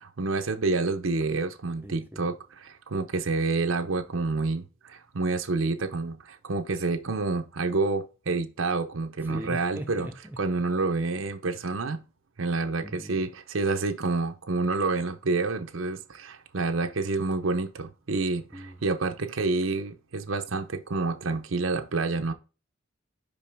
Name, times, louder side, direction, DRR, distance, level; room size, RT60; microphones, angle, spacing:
voice 1, 0.0-2.3 2.7-10.1 10.4-12.0 12.4-22.3, right 3 dB, 80° right, 0.7 m, -28 dB
voice 2, 1.8-2.3 9.2-10.4 12.8-13.3 18.5-18.8, right 1 dB, 10° right, 0.6 m, -40 dB
5.4 x 5.3 x 3.4 m
head